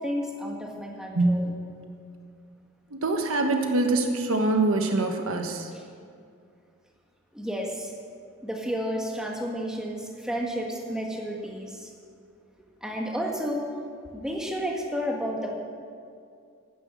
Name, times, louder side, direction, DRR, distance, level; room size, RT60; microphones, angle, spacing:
voice 1, 0.0-1.5 5.7-5.8 7.3-7.9 8.4-11.9 12.8-13.7 14.1-15.6, equal, 5° right, -1 dB, 1.6 m, -31 dB
voice 2, 1.1-1.5 2.9-5.7, right 2 dB, 80° right, 4 dB, 1.2 m, -24 dB
11.0 x 9.8 x 7.5 m, 2.3 s
head